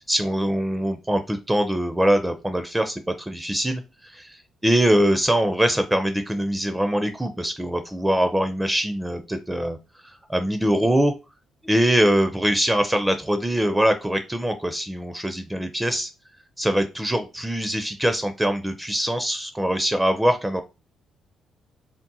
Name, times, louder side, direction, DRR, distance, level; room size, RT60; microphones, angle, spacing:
voice 1, 0.1-3.8 4.1-4.4 4.6-9.8 10.0-11.1 11.6-16.1 16.6-20.6, right 1 dB, 10° right, 8 dB, 0.4 m, -23 dB
3.7 x 2.1 x 2.6 m, 0.28 s
cardioid pair, 90°, 0 cm